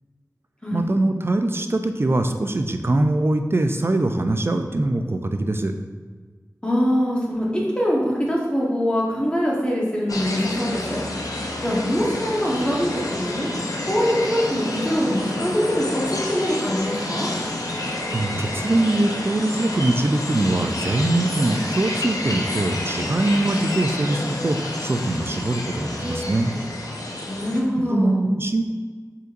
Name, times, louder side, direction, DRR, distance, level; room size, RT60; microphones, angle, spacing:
voice 1, 0.7-5.7 18.1-26.5 27.9-28.7, right 2 dB, 40° right, 7 dB, 0.4 m, -22 dB
voice 2, 6.6-7.5 7.7-11.0 11.6-13.5 13.8-17.3 27.3-28.2, equal, 15° left, -4 dB, 1.1 m, -23 dB
sound 1, 10.1-27.6, left 1 dB, 75° left, 0.5 m, -29 dB
5.3 x 3.9 x 2.5 m, 1.5 s
wide cardioid pair, 55°, 6 cm